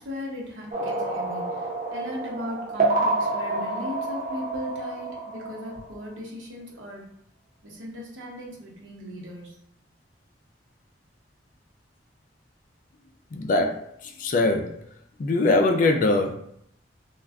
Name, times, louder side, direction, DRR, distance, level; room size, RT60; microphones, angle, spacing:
voice 1, 0.0-7.1 7.6-9.6, left 1 dB, 90° right, -2 dB, 1.0 m, -37 dB
sound 1, 0.7-6.1, right 2 dB, 45° right, 0.7 m, -28 dB
voice 2, 13.3-14.8 15.2-16.3, left 2 dB, 45° left, 5 dB, 0.3 m, -22 dB
2.3 x 2.2 x 3.5 m, 0.70 s
head